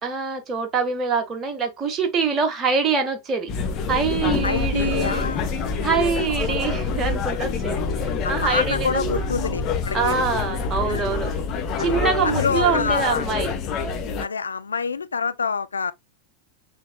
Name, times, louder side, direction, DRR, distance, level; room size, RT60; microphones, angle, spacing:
voice 1, 0.0-3.5 3.9-5.3 5.8-9.2 9.9-11.4 11.8-13.5, right 5 dB, 25° right, 1.3 m, -24 dB
sound 1, 3.5-14.2, left 4 dB, 35° left, 1.0 m, -26 dB
voice 2, 4.4-5.4 6.5-6.6 8.2-10.3 10.9-11.0 11.8-11.9 12.2-13.3 14.2-15.9, left 5 dB, 75° left, 0.4 m, -26 dB
6.1 x 3.5 x 2.2 m
figure-of-eight pair, 90°, 0 cm